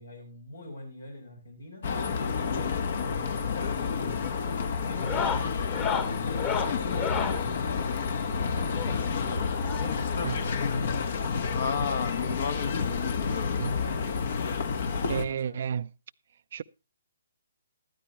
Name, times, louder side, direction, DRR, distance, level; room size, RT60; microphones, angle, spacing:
voice 1, 0.0-1.8 2.4-4.3 4.8-7.5 8.3-9.3 9.6-12.4 12.7-14.0 14.9-15.6, left 1 dB, 80° left, 7.0 m, -44 dB
sound 1, 1.8-15.2, left 5 dB, 55° left, 1.5 m, -29 dB
sound 2, 3.4-3.7 4.0-4.4 4.9-7.4 8.8-10.1 11.2-11.3 11.5-11.6 12.1-12.2 13.5-13.6 14.9-15.0, left 6 dB, 25° left, 1.6 m, -33 dB
voice 2, 15.1-15.9 16.5-16.6, right 8 dB, 55° right, 0.5 m, -31 dB
14.0 x 13.0 x 3.1 m
figure-of-eight pair, 140°, 0 cm